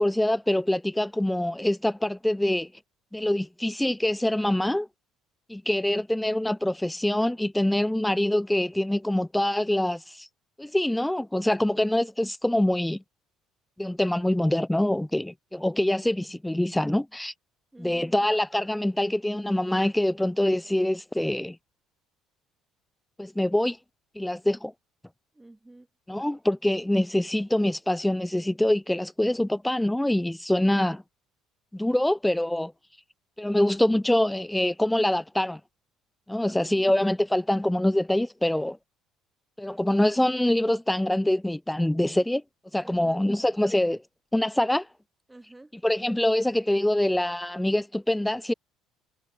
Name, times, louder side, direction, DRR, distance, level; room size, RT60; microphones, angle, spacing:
voice 1, 0.0-2.7 3.1-4.9 5.5-10.3 10.6-13.0 13.8-17.3 17.8-21.6 23.2-23.8 24.2-24.7 26.1-31.0 31.7-32.7 33.4-35.6 36.3-38.8 39.6-42.4 42.7-44.0 44.3-44.9 45.8-48.5, left 1 dB, 5° left, 0.3 m, -25 dB
voice 2, 17.7-18.2 25.3-25.9 36.4-36.9 42.8-43.3 45.3-45.8, right 2 dB, 10° right, 4.3 m, -50 dB
cardioid pair, 105°, 0 cm